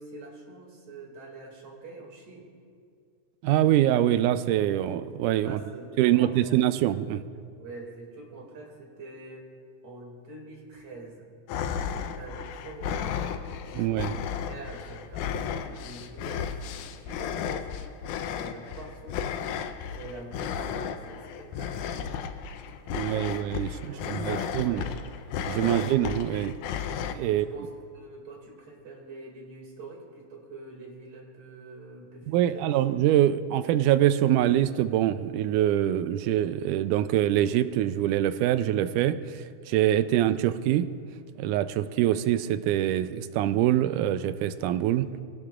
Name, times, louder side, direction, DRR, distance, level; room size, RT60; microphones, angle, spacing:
voice 1, 0.0-2.5 5.4-6.6 7.6-9.5 9.8-11.3 11.9-13.5 13.8-17.7 18.4-19.2 19.9-22.3 22.8-23.4 23.8-25.1 25.6-25.9 27.2-32.8, right 3 dB, 60° right, -1 dB, 3.5 m, -45 dB
voice 2, 3.4-5.6 6.0-7.2 13.7-14.2 22.9-24.8 25.5-26.5 27.1-27.5 32.3-39.4 39.7-40.9 41.4-45.1, right 12 dB, 90° right, 12 dB, 2.1 m, -24 dB
sound 1, 11.5-27.1, left 7 dB, 85° left, 2.1 m, -34 dB
23.5 x 17.0 x 2.5 m, 2.2 s
omnidirectional pair, 3.5 m